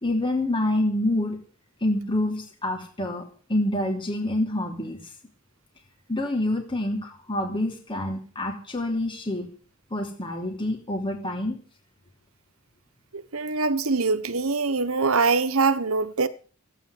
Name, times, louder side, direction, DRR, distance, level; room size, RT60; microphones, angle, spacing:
voice 1, 0.0-1.4 1.8-3.2 3.5-5.0 6.1-9.5 9.9-11.6, left 1 dB, 25° left, 2.9 m, -27 dB
voice 2, 13.1-16.3, right 4 dB, 75° right, 1.2 m, -23 dB
15.5 x 9.1 x 7.9 m
head